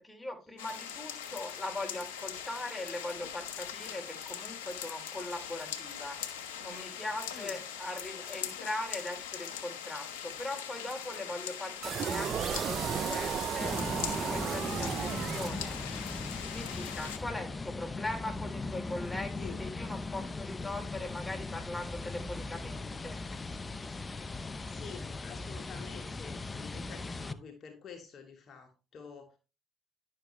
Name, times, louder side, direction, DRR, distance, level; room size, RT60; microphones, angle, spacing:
voice 1, 0.0-6.2 6.6-13.7 14.1-15.8 16.5-23.2, left 2 dB, 10° left, 1 dB, 3.3 m, -40 dB
sound 1, 0.6-17.2, left 8 dB, 90° left, 1.0 m, -41 dB
sound 2, 11.8-16.0, right 8 dB, 50° right, 0.5 m, -34 dB
sound 3, 13.6-27.3, left 3 dB, 25° left, 0.7 m, -39 dB
voice 2, 24.7-29.4, left 6 dB, 50° left, 4 dB, 1.6 m, -48 dB
10.5 x 6.5 x 3.2 m, 0.30 s
hypercardioid pair, 65°, 0 cm